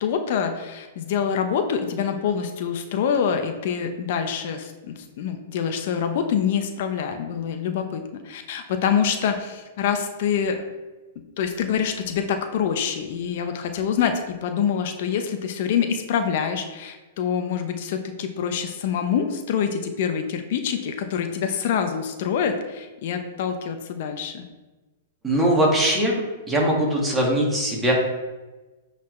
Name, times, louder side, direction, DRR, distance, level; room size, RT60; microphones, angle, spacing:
voice 1, 0.0-10.6 11.4-24.4, left 7 dB, 60° left, 6 dB, 0.8 m, -26 dB
voice 2, 25.2-26.2 26.5-27.9, right 1 dB, 10° right, -2 dB, 1.9 m, -21 dB
9.4 x 4.1 x 3.2 m, 1.2 s
hypercardioid pair, 135°, 0 cm